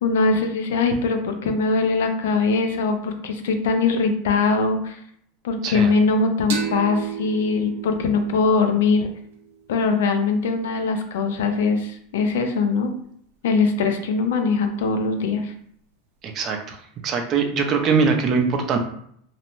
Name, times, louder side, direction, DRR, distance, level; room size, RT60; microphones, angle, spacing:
voice 1, 0.0-5.0 5.4-9.1 9.7-12.9 13.4-15.5, left 4 dB, 90° left, 6 dB, 0.4 m, -21 dB
sound 1, 6.5-9.9, right 5 dB, 85° right, 0.7 m, -33 dB
voice 2, 16.2-16.8 17.0-18.8, right 5 dB, 35° right, 4 dB, 0.5 m, -22 dB
2.6 x 2.0 x 3.0 m, 0.66 s
supercardioid pair, 135°, 0 cm